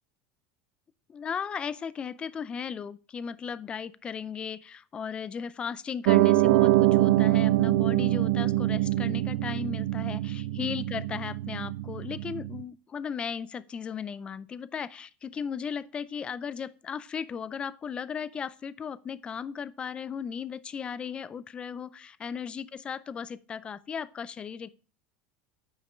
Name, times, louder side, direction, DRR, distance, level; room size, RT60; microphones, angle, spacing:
voice 1, 1.1-24.7, left 7 dB, 20° left, 0.4 m, -36 dB
Piano, 6.1-12.6, right 16 dB, 80° right, 0.4 m, -24 dB
9.0 x 5.1 x 4.4 m
supercardioid pair, 150°, 5 cm